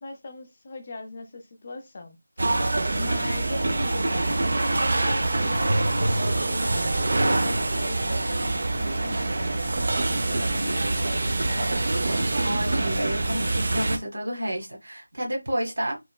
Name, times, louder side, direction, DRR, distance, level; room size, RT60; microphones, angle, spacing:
voice 1, 0.0-2.2 3.0-9.7 10.1-12.2, left 2 dB, 30° left, 0.5 m, -40 dB
sound 1, 2.4-14.0, right 2 dB, 50° right, 0.4 m, -25 dB
voice 2, 12.4-16.0, equal, 65° right, 1.2 m, -30 dB
3.0 x 2.1 x 2.2 m
figure-of-eight pair, 170°, 0 cm